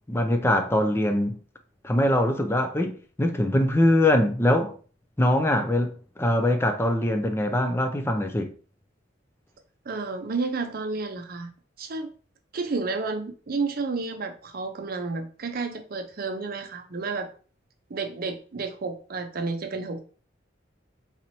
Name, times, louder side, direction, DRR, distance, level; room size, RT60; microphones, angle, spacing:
voice 1, 0.1-1.4 1.8-4.7 5.2-8.5, left 1 dB, 15° left, 0.5 m, -23 dB
voice 2, 9.9-11.5 11.8-12.1 12.5-17.3 17.9-20.0, right 3 dB, 50° right, 0.6 m, -31 dB
4.0 x 3.0 x 2.7 m
head